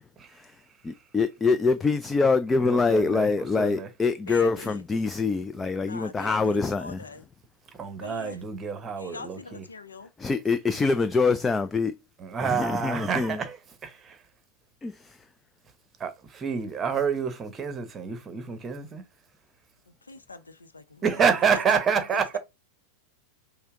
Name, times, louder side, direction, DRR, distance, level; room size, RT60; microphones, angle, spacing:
voice 1, 0.9-7.0 10.2-11.9 12.4-13.4 14.8-15.3, left 4 dB, 15° left, 0.3 m, -25 dB
voice 2, 2.6-3.9 7.8-9.6 12.2-14.2 16.0-19.0 21.0-22.4, right 6 dB, 20° right, 0.9 m, -28 dB
voice 3, 4.3-4.8 5.8-7.2 8.0-8.4 9.0-10.1 19.9-22.4, left 3 dB, 75° left, 0.6 m, -42 dB
5.5 x 2.1 x 3.7 m
figure-of-eight pair, 90°, 0 cm